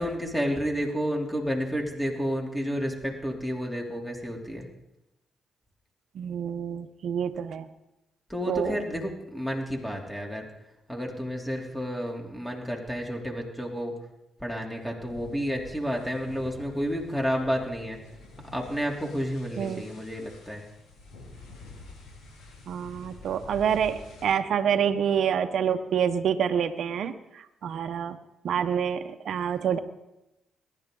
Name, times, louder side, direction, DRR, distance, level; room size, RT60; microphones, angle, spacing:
voice 1, 0.0-4.7 8.3-10.4 10.9-13.9 14.4-18.0 18.5-20.6, equal, 5° left, 0 dB, 3.2 m, -30 dB
voice 2, 6.1-7.7 8.5-8.8 19.6-19.8 22.7-28.2 28.4-29.8, right 8 dB, 70° right, 8 dB, 0.9 m, -27 dB
sound 1, 15.0-24.3, left 2 dB, 75° left, 6.7 m, -48 dB
21.5 x 11.0 x 3.9 m, 0.94 s
supercardioid pair, 60°, 0 cm